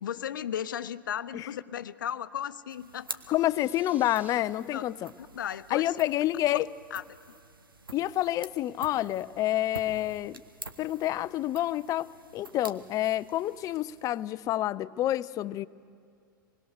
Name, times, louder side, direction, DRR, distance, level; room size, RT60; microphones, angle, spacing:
voice 1, 0.0-3.2 4.7-4.8 5.2-6.0 6.5-6.6 6.9-7.0, left 9 dB, 70° left, 0.7 m, -35 dB
sound 1, 2.7-14.4, right 3 dB, 85° right, 1.1 m, -48 dB
sound 2, 3.2-4.4, right 3 dB, 15° right, 1.3 m, -54 dB
voice 2, 3.3-5.1 5.7-6.7 7.9-10.4 10.8-15.7, left 14 dB, 30° left, 0.5 m, -28 dB
26.5 x 20.5 x 6.6 m
figure-of-eight pair, 90°, 11 cm